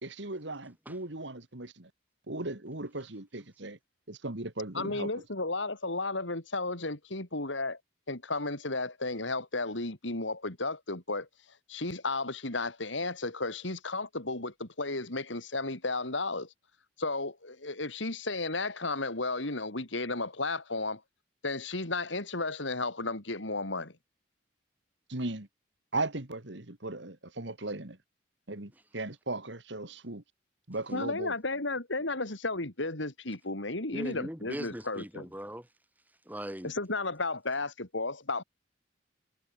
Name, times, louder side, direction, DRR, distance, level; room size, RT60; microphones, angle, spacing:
voice 1, 0.0-1.9 2.3-3.8 4.1-5.1 25.1-25.5 25.9-28.0 28.5-30.2 30.7-31.3, right 2 dB, 70° right, 2.4 m, -37 dB
voice 2, 4.7-7.8 8.1-11.3 11.7-16.5 17.0-21.0 21.4-23.9 30.9-35.3 36.6-38.4, left 3 dB, 80° left, 3.8 m, -33 dB
voice 3, 33.9-35.7 36.2-36.7, equal, 10° right, 5.0 m, -39 dB
head